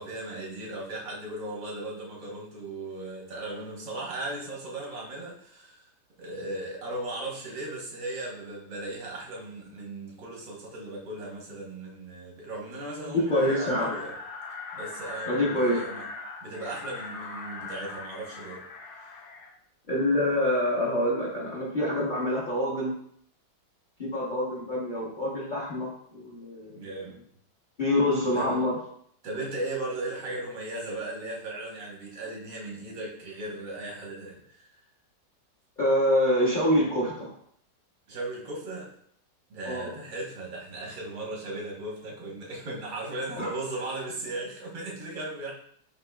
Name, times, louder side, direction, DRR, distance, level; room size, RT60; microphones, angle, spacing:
voice 1, 0.0-5.9 6.2-14.1 14.7-16.1 16.4-18.6 26.7-27.2 28.4-28.6 29.2-34.6 38.1-38.9 39.5-45.5, right 2 dB, 90° right, -3 dB, 2.0 m, -37 dB
voice 2, 13.1-13.9 15.2-15.8 19.9-22.9 24.0-26.8 27.8-28.8 35.8-37.3 39.6-39.9 43.4-43.5, left 1 dB, 35° left, -6 dB, 0.8 m, -26 dB
sound 1, 13.3-19.5, left 4 dB, 65° left, 1.3 m, -40 dB
7.7 x 2.9 x 2.3 m, 0.64 s
omnidirectional pair, 2.0 m